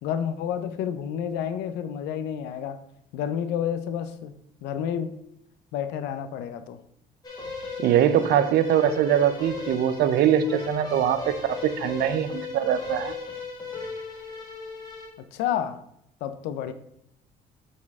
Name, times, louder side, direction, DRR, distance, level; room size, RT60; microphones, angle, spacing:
voice 1, 0.0-2.8 3.1-4.3 4.6-5.2 5.7-6.8 15.2-15.8 16.2-16.7, left 9 dB, 90° left, 0.5 m, -30 dB
sound 1, 7.2-15.1, left 4 dB, 25° left, 1.7 m, -36 dB
voice 2, 7.8-13.1, right 9 dB, 70° right, 0.5 m, -22 dB
7.3 x 4.3 x 3.5 m
cardioid pair, 110°, 17 cm